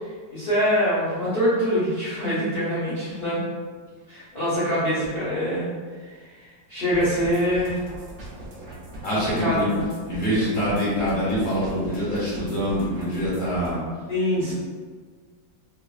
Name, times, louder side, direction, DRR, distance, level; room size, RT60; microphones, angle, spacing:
voice 1, 0.3-3.4 4.1-5.7 6.0-6.1 6.7-7.8 9.1-9.7 14.1-14.5, equal, 50° left, -11 dB, 0.7 m, -24 dB
sound 1, 6.9-13.8, right 1 dB, 70° right, 0.6 m, -40 dB
voice 2, 9.0-9.7 10.1-13.8 14.3-14.5, equal, 5° left, -10 dB, 0.7 m, -25 dB
3.3 x 2.1 x 2.3 m, 1.5 s
omnidirectional pair, 2.1 m